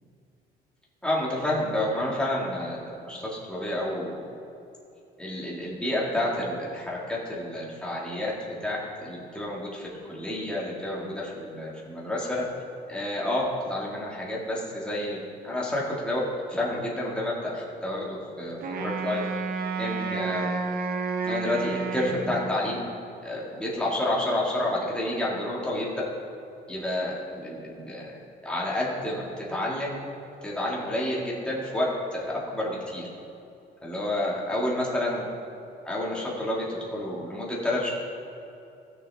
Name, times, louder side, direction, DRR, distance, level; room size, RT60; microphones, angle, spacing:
voice 1, 1.0-4.2 5.2-8.3 8.6-9.8 10.1-12.3 12.9-15.2 15.4-16.2 16.5-19.2 19.8-20.5 21.2-22.8 23.2-26.0 26.7-28.2 28.4-30.0 30.4-31.8 32.1-32.2 32.5-33.1 33.8-35.3 35.8-37.9, left 1 dB, 5° left, -5 dB, 2.0 m, -29 dB
Wind instrument woodwind instrument, 18.6-23.0, right 4 dB, 60° right, 0.9 m, -31 dB
15.0 x 6.6 x 3.5 m, 2.7 s
cardioid pair, 110°, 17 cm